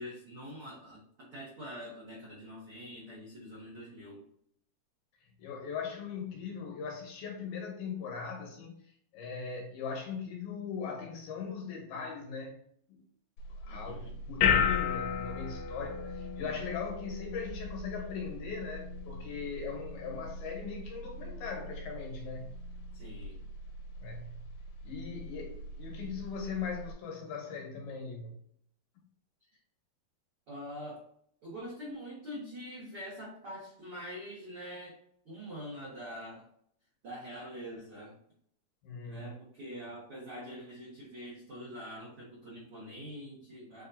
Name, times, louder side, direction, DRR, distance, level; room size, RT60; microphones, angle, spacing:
voice 1, 0.0-4.2 13.7-14.1 22.9-23.4 30.5-31.0 31.4-35.0 35.2-36.5 37.0-38.1 39.0-43.9, equal, 80° right, 1.2 m, -44 dB
voice 2, 5.4-12.6 12.9-13.0 13.6-22.5 24.0-24.5 24.8-28.4 38.8-39.3, left 6 dB, 70° left, 2.7 m, -39 dB
sound 1, 13.4-26.9, left 6 dB, 85° left, 2.7 m, -36 dB
7.4 x 2.7 x 2.6 m
omnidirectional pair, 4.7 m